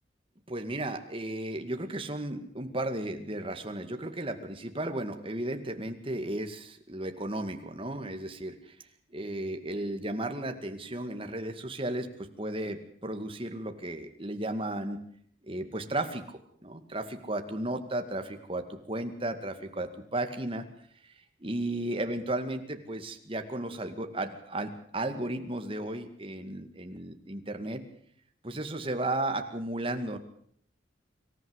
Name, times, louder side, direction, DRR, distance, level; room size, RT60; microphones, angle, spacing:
voice 1, 0.5-8.7 9.1-12.1 12.4-15.0 15.5-16.2 16.6-20.6 21.4-27.8 28.4-30.2, right 1 dB, 30° right, 6 dB, 2.1 m, -34 dB
25.5 x 14.5 x 8.1 m, 0.65 s
head